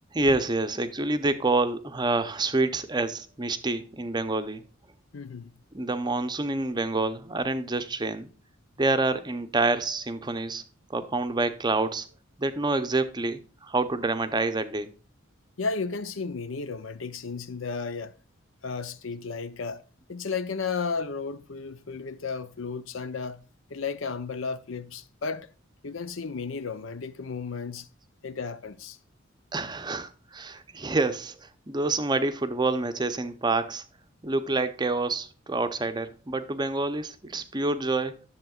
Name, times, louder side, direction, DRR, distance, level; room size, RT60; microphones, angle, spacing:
voice 1, 0.1-4.6 5.7-8.3 8.8-10.6 10.9-12.1 12.4-14.9 29.5-33.8 34.2-38.3, right 2 dB, 20° right, 0.6 m, -27 dB
voice 2, 5.1-5.6 15.6-18.1 18.6-19.8 20.1-23.4 23.7-25.5 25.8-27.9 28.2-29.0, left 4 dB, 70° left, 0.6 m, -33 dB
10.5 x 7.3 x 2.4 m
head